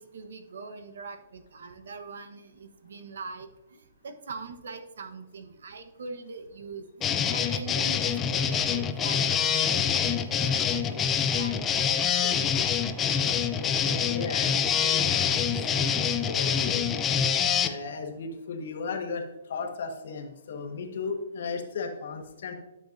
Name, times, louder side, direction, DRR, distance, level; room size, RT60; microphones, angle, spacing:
voice 1, 0.0-3.5 4.0-11.7 12.2-12.5, right 4 dB, 75° right, 8 dB, 1.1 m, -42 dB
sound 1, 7.0-17.7, left 7 dB, 15° left, 0.4 m, -26 dB
voice 2, 13.8-16.8 17.6-22.5, left 4 dB, 60° left, 4 dB, 1.4 m, -36 dB
12.0 x 6.8 x 2.6 m, 0.99 s
hypercardioid pair, 165°, 0 cm